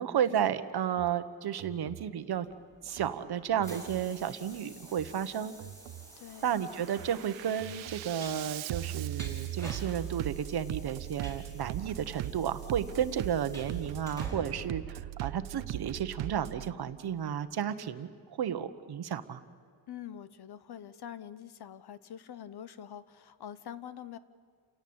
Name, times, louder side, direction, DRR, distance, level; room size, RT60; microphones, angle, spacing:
voice 1, 0.0-2.5 2.8-5.5 6.4-18.1 18.4-19.4, right 9 dB, 50° right, 11 dB, 1.3 m, -32 dB
Bass drum, 0.9-1.1 1.6-2.1 2.9-3.1 3.6-4.1 4.9-5.1 5.6-6.1 6.5-16.7, right 14 dB, 75° right, 0.8 m, -39 dB
Train, 2.5-15.6, equal, 5° left, 4.9 m, -50 dB
voice 2, 6.2-6.6 19.9-24.2, left 9 dB, 55° left, 15 dB, 1.0 m, -45 dB
29.0 x 17.5 x 8.8 m, 2.2 s
cardioid pair, 145°, 47 cm